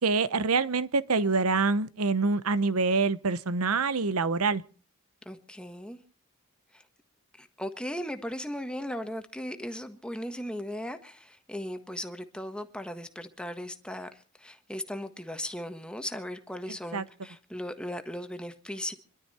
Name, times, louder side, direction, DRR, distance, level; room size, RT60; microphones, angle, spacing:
voice 1, 0.0-4.6 16.9-17.0, right 4 dB, 90° right, 0.9 m, -26 dB
voice 2, 5.2-6.0 6.7-6.8 7.4-18.9, equal, 5° left, 1.5 m, -37 dB
26.5 x 12.0 x 4.3 m
head